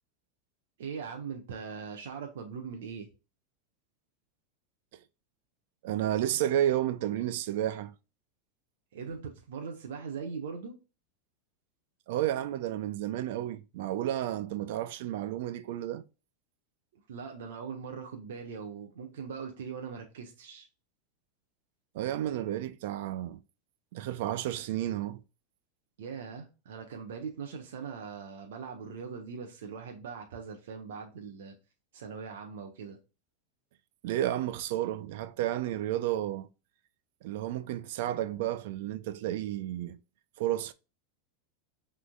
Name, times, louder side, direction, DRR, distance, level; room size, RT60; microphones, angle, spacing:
voice 1, 0.8-3.1 8.9-10.8 16.9-20.7 26.0-31.6 31.9-33.0, right 6 dB, 85° right, 1.1 m, -41 dB
voice 2, 5.8-7.9 12.1-16.0 21.9-23.4 23.9-25.2 34.0-36.5 37.2-40.0 40.4-40.7, right 12 dB, 65° right, 0.5 m, -31 dB
6.1 x 3.7 x 2.2 m
supercardioid pair, 150°, 0 cm